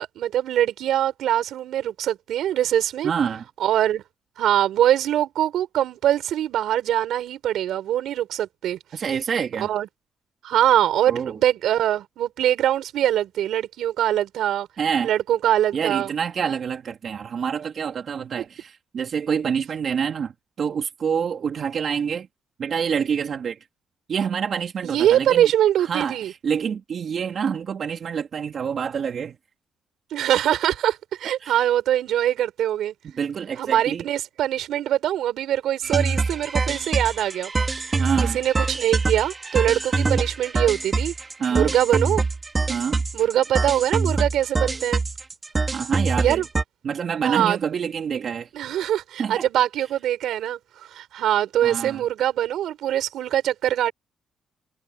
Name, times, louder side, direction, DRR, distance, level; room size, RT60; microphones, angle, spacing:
voice 1, 0.0-3.1 3.6-4.0 4.4-8.8 9.6-9.9 10.4-14.7 15.0-16.1 24.8-26.3 30.1-32.9 33.6-37.5 37.8-38.0 38.3-41.1 41.5-42.2 43.1-45.0 46.2-46.5 47.2-47.6 48.5-53.9, right 11 dB, 80° right, 5.4 m, -23 dB
voice 2, 3.0-3.5 8.9-9.7 11.1-11.4 14.8-15.1 15.7-20.3 20.6-22.3 22.6-23.6 24.1-25.5 25.8-29.4 31.4-31.7 33.2-34.0 38.0-38.4 41.4-41.7 42.7-43.0 45.7-46.4 46.8-48.5 49.2-49.5 51.6-52.0, right 7 dB, 60° right, 2.6 m, -27 dB
sound 1, 35.8-46.6, right 3 dB, 30° right, 2.9 m, -25 dB
cardioid pair, 75°, 0 cm